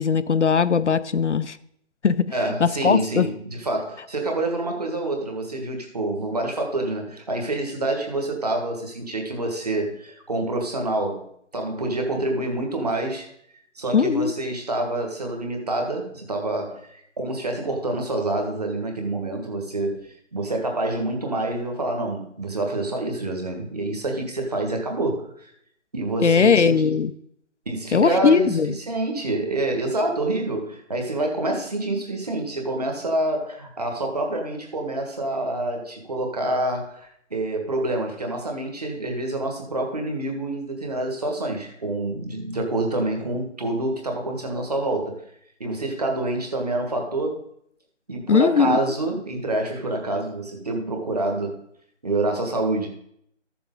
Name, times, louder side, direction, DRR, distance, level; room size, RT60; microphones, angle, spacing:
voice 1, 0.0-1.6 2.0-2.3 2.6-3.3 13.9-14.3 26.2-27.1 27.9-28.7 48.3-48.8, left 6 dB, 70° left, 13 dB, 0.6 m, -19 dB
voice 2, 2.3-11.3 11.5-13.3 13.8-25.5 25.9-26.9 27.7-28.6 28.9-45.2 45.6-47.5 48.1-51.6 52.0-52.9, right 2 dB, 30° right, 2 dB, 1.7 m, -27 dB
13.5 x 6.9 x 3.8 m, 0.71 s
figure-of-eight pair, 175°, 37 cm